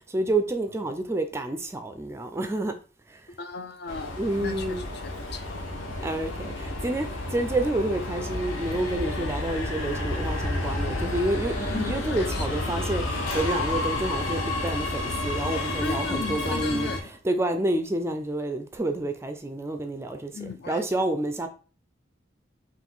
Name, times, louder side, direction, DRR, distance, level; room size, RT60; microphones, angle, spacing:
voice 1, 0.1-2.7 4.2-4.8 6.0-16.9 17.2-20.3 20.7-21.5, right 1 dB, 15° right, 0.3 m, -29 dB
voice 2, 3.4-5.6 11.7-12.6 15.8-17.0 20.3-20.9, left 5 dB, 55° left, 0.5 m, -36 dB
Subway metro underground, 3.9-17.0, left 2 dB, 90° left, 0.9 m, -30 dB
3.7 x 2.6 x 3.8 m
head